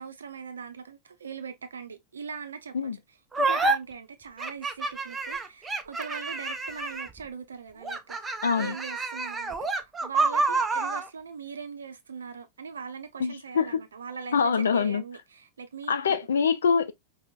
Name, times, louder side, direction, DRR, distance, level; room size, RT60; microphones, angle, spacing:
voice 1, 0.0-16.0, right 6 dB, 70° right, 0.6 m, -41 dB
sound 1, 3.3-3.8 4.4-7.2 7.8-11.1, right 3 dB, 15° right, 0.5 m, -28 dB
voice 2, 8.4-8.7 13.2-13.8 14.3-15.0 15.9-16.9, left 6 dB, 65° left, 0.3 m, -24 dB
5.0 x 2.1 x 2.3 m
figure-of-eight pair, 90°, 0 cm